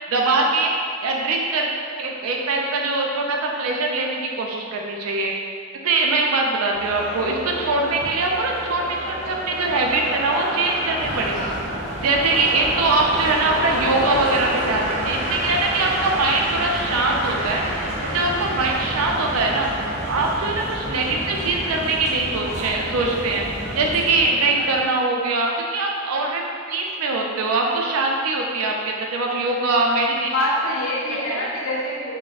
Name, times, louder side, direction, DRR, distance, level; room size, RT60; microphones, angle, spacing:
voice 1, 0.1-0.7 1.0-5.3 5.8-11.6 12.0-17.6 18.0-19.7 20.1-23.5 23.7-26.4 26.7-30.3 31.3-31.4, right 3 dB, 85° right, 0 dB, 0.4 m, -22 dB
sound 1, 6.7-24.8, right 1 dB, 30° right, 0.5 m, -30 dB
sound 2, 11.0-24.2, equal, 30° left, 0.7 m, -34 dB
voice 2, 30.3-32.2, left 1 dB, 75° left, -6 dB, 0.6 m, -25 dB
4.0 x 2.1 x 2.4 m, 2.2 s
head